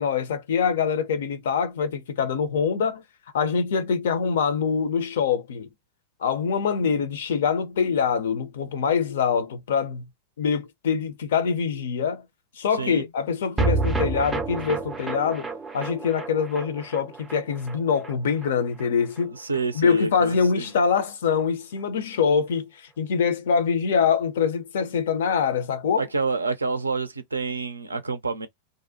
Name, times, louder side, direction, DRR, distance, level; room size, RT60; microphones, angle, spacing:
voice 1, 0.0-3.0 3.3-5.7 6.2-10.0 10.4-12.2 12.6-15.5 15.7-19.3 19.7-22.7 23.0-26.1, left 6 dB, 60° left, 0.5 m, -24 dB
voice 2, 12.7-13.1 19.3-20.6 26.0-28.5, right 4 dB, 80° right, 0.4 m, -28 dB
sound 1, 13.6-20.0 20.3-20.4 20.6-20.7, right 3 dB, 10° right, 0.4 m, -30 dB
2.5 x 2.0 x 2.6 m
figure-of-eight pair, 90°, 0 cm